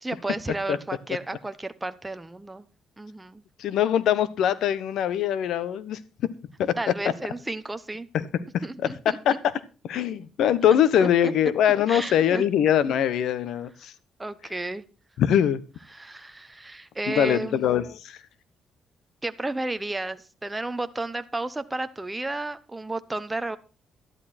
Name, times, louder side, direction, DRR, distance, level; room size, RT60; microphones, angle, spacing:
voice 1, 0.0-2.7 3.0-3.4 6.8-8.1 8.6-9.4 11.0-11.3 11.9-12.4 14.2-14.9 15.9-17.6 19.2-23.6, right 2 dB, 15° right, 11 dB, 0.9 m, -32 dB
voice 2, 3.6-6.0 6.6-6.7 8.1-8.3 8.5-8.6 9.2-9.3 9.8-13.9 15.2-15.6 17.1-18.2, left 9 dB, 80° left, 16 dB, 1.1 m, -22 dB
12.5 x 11.0 x 4.4 m, 0.33 s
cardioid pair, 90°, 0 cm